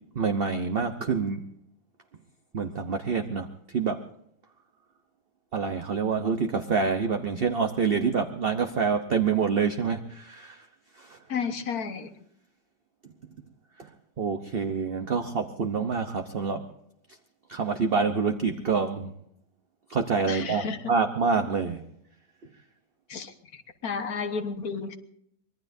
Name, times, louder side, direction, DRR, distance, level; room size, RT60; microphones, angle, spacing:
voice 1, 0.1-1.4 2.5-3.5 3.7-4.0 5.5-10.7 11.0-11.2 13.8-13.9 14.2-16.6 17.5-19.1 19.9-21.8, right 5 dB, 40° right, 6 dB, 1.0 m, -27 dB
voice 2, 11.3-12.1 20.3-20.8 23.1-23.3 23.8-25.0, left 5 dB, 65° left, 8 dB, 1.8 m, -31 dB
25.0 x 21.5 x 2.7 m, 0.72 s
omnidirectional pair, 1.7 m